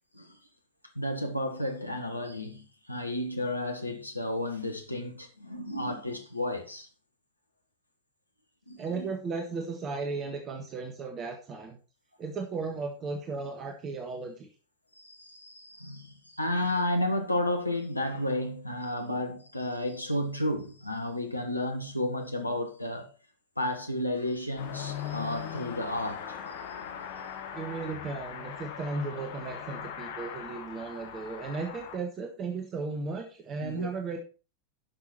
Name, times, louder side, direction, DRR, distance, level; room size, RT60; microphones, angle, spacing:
voice 1, 0.9-6.9 8.7-9.1 14.9-23.1 23.6-26.4 33.6-33.9, left 1 dB, 85° left, 1.5 m, -32 dB
voice 2, 8.8-11.8 12.2-14.5 27.5-34.2, right 4 dB, 30° right, 1.4 m, -35 dB
Car passing by / Accelerating revving vroom, 24.6-32.0, left 8 dB, 55° left, 1.5 m, -40 dB
10.5 x 6.2 x 4.4 m
figure-of-eight pair, 90°, 0 cm